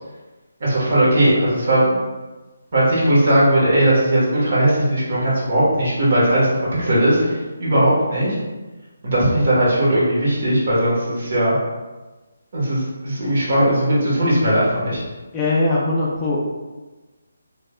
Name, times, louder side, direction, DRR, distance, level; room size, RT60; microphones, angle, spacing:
voice 1, 0.6-1.8 2.7-8.4 9.0-11.5 12.5-15.0, right 1 dB, 55° right, -8 dB, 1.5 m, -18 dB
voice 2, 15.3-16.4, left 2 dB, 15° left, -6 dB, 0.4 m, -21 dB
3.3 x 2.8 x 2.3 m, 1.2 s
hypercardioid pair, 165°, 0 cm